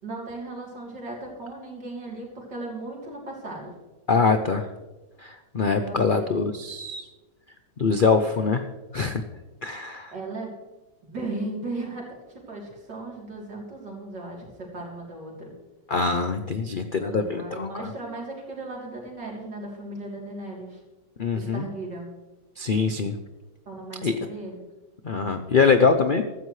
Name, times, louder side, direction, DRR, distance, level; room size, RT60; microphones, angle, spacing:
voice 1, 0.0-3.7 5.6-6.4 10.1-10.5 11.0-15.6 17.1-20.8 21.3-22.1 23.7-24.6, right 2 dB, 75° right, -2 dB, 4.0 m, -36 dB
voice 2, 4.1-4.7 5.2-7.1 7.8-8.7 8.9-9.2 9.6-10.1 15.9-17.9 21.2-21.6 22.6-23.1 24.0-24.2 25.0-26.2, left 4 dB, 65° left, 7 dB, 0.5 m, -23 dB
15.5 x 13.0 x 3.2 m, 1.1 s
omnidirectional pair, 1.9 m